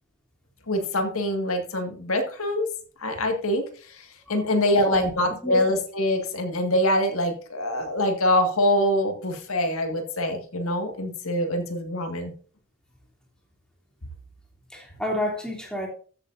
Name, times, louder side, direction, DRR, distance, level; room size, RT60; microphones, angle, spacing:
voice 1, 0.7-2.7 3.0-12.3, left 1 dB, 85° left, 5 dB, 2.0 m, -24 dB
voice 2, 14.7-15.9, left 1 dB, 5° left, 0 dB, 2.9 m, -28 dB
13.5 x 8.8 x 2.6 m, 0.41 s
head